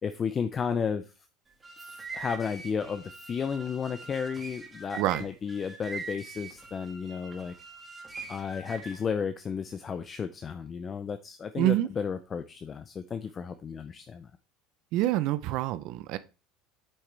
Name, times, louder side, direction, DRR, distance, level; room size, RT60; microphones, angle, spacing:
voice 1, 0.0-1.0 1.9-7.5 8.3-14.3, left 6 dB, 25° left, 0.5 m, -33 dB
sound 1, 1.5-9.1, right 4 dB, 15° right, 1.9 m, -43 dB
voice 2, 5.0-5.3 11.6-11.9 14.9-16.2, right 15 dB, 60° right, 0.5 m, -26 dB
8.8 x 7.6 x 3.3 m
cardioid pair, 145°, 0 cm